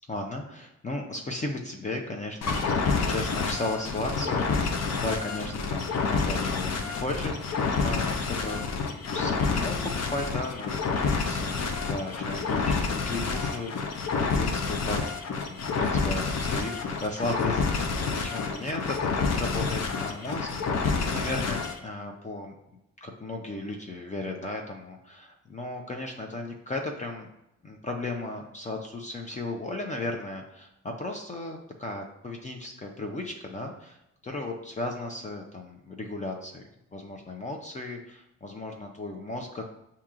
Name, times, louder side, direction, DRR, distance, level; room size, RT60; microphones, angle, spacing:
voice 1, 0.1-8.6 8.9-10.8 11.1-15.0 15.3-16.7 17.0-22.5 23.0-27.3 27.6-34.0 34.2-36.6 36.9-39.7, left 2 dB, 25° left, 2 dB, 0.6 m, -35 dB
sound 1, 2.4-21.8, left 4 dB, 60° left, 0.7 m, -28 dB
7.0 x 2.8 x 2.4 m, 0.84 s
cardioid pair, 90°, 30 cm